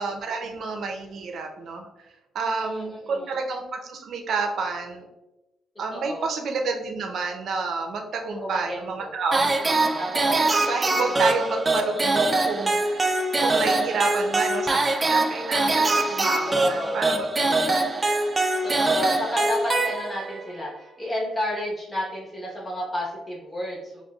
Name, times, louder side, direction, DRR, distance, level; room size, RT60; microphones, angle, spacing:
voice 1, 0.0-1.9 2.3-5.0 5.8-13.1 13.4-17.9, right 4 dB, 65° right, 2 dB, 0.7 m, -29 dB
voice 2, 2.4-3.3 5.9-6.3 8.3-10.3 10.9-11.2 14.2-14.4 16.4-17.0 18.6-24.0, left 1 dB, 20° left, -4 dB, 1.1 m, -32 dB
sound 1, 9.3-20.4, right 2 dB, 25° right, 0.4 m, -23 dB
6.6 x 2.2 x 2.4 m, 0.95 s
cardioid pair, 90°, 0 cm